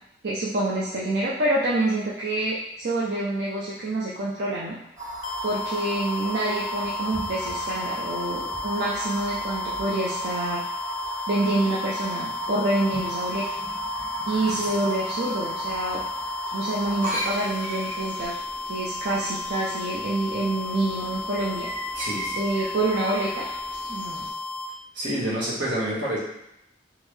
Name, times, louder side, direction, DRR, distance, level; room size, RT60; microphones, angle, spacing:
voice 1, 0.2-4.8 5.4-10.6 11.3-13.4 14.3-16.0 16.5-18.3 18.6-21.7 22.4-23.5 23.9-24.3, right 2 dB, 65° right, -5 dB, 0.5 m, -27 dB
sound 1, 5.0-18.3, right 1 dB, 45° right, 1.4 m, -34 dB
sound 2, 5.2-24.7, left 2 dB, 45° left, 0.3 m, -34 dB
sound 3, 17.1-24.3, right 1 dB, 25° right, 0.6 m, -40 dB
voice 2, 21.9-22.4 24.9-26.2, right 1 dB, 85° right, -6 dB, 1.4 m, -28 dB
3.7 x 3.0 x 3.2 m, 0.81 s
head